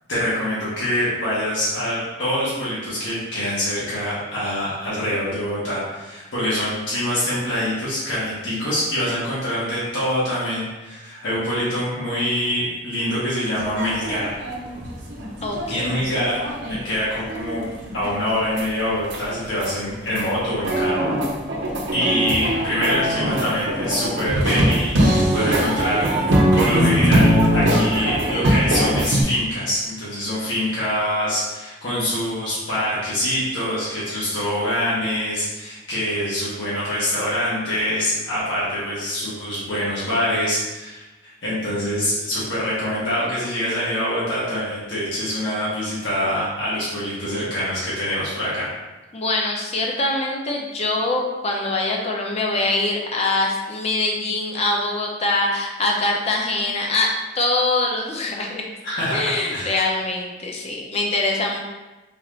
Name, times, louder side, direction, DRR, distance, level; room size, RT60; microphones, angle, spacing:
voice 1, 0.1-14.4 15.7-16.4 16.7-17.6 17.9-21.1 21.9-26.1 26.5-48.7 58.8-59.8, equal, 85° left, -9 dB, 1.2 m, -25 dB
sound 1, 13.5-16.8 17.2-19.2 19.5-20.3 20.6-29.2, equal, 75° right, 0.7 m, -21 dB
voice 2, 15.4-16.0 49.1-58.6 59.1-61.6, left 2 dB, 35° left, 0 dB, 0.5 m, -23 dB
4.0 x 2.5 x 3.0 m, 1.1 s
head